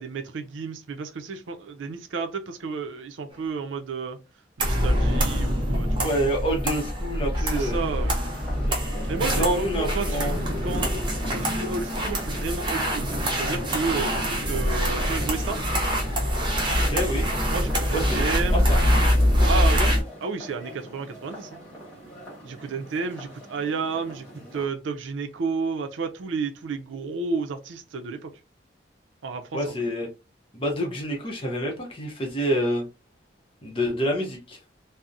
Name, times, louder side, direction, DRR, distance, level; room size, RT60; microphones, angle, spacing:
voice 1, 0.0-4.2 4.6-6.1 7.3-8.2 9.1-15.6 17.5-18.7 19.4-21.6 22.4-24.3 24.5-28.3 29.2-29.6, right 4 dB, 90° right, 0.5 m, -32 dB
sound 1, 4.6-20.0, equal, 25° right, 0.5 m, -24 dB
voice 2, 6.0-7.8 8.7-8.8 9.3-10.4 10.8-11.0 16.8-17.3 17.9-18.2 18.5-18.8 19.4-19.9 29.5-30.1 30.5-32.8 33.6-34.6, equal, 30° left, 0.6 m, -27 dB
sound 2, 7.5-24.7, equal, 10° left, 1.2 m, -43 dB
2.6 x 2.0 x 2.3 m
head